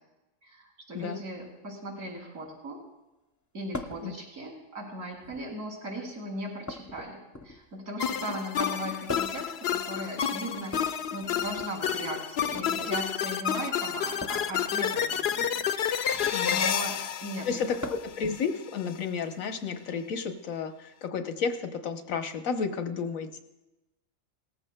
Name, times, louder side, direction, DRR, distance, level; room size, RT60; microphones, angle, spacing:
voice 1, 0.4-2.8 3.5-16.0 16.5-17.6, right 1 dB, 75° right, -1 dB, 2.8 m, -38 dB
sound 1, 3.7-4.1 5.1-5.6 6.7-7.8 9.1-9.5 10.6-11.7 12.4-12.7 14.2-14.5 16.1-16.4 17.8-18.2 19.7-19.8 21.0-21.1, left 2 dB, 20° left, 0.6 m, -40 dB
sound 2, 8.0-18.4, left 8 dB, 65° left, 0.7 m, -30 dB
voice 2, 16.3-16.7 17.5-23.4, left 6 dB, 80° left, 7 dB, 1.3 m, -32 dB
18.5 x 14.0 x 2.2 m, 0.99 s
omnidirectional pair, 1.4 m